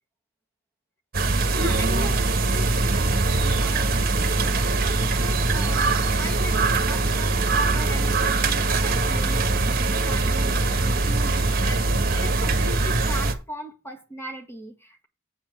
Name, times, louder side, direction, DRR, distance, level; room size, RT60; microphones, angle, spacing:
sound 1, 1.1-13.3, right 3 dB, 45° right, 1.3 m, -22 dB
voice 1, 1.2-15.1, right 1 dB, 10° left, 1.7 m, -39 dB
8.3 x 4.4 x 6.9 m
head